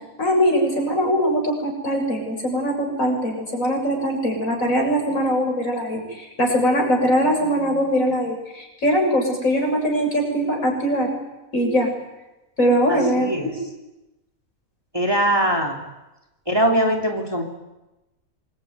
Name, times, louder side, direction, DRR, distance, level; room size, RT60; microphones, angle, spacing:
voice 1, 0.2-11.1 11.5-11.9 12.6-13.5, equal, 65° left, 1 dB, 7.6 m, -21 dB
voice 2, 12.9-13.5 14.9-15.8 16.5-17.4, right 1 dB, 15° right, 1 dB, 3.2 m, -21 dB
27.0 x 22.0 x 9.6 m, 1.0 s
omnidirectional pair, 1.5 m